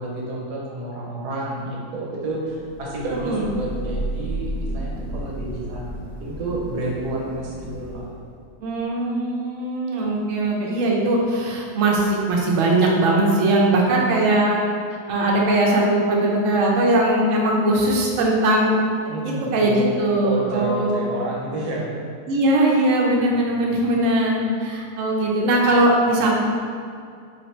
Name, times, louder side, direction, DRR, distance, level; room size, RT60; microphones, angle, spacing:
voice 1, 0.0-5.9 6.2-8.1 19.1-19.8 20.2-21.9 23.4-23.9, right 2 dB, 85° right, -4 dB, 1.4 m, -30 dB
Thunder / Rain, 2.6-8.3, right 1 dB, 40° left, 0.7 m, -32 dB
voice 2, 8.6-14.6 15.1-18.8 19.2-21.1 22.3-26.3, right 1 dB, 65° right, -2 dB, 0.9 m, -20 dB
3.3 x 2.6 x 4.1 m, 2.3 s
omnidirectional pair, 1.7 m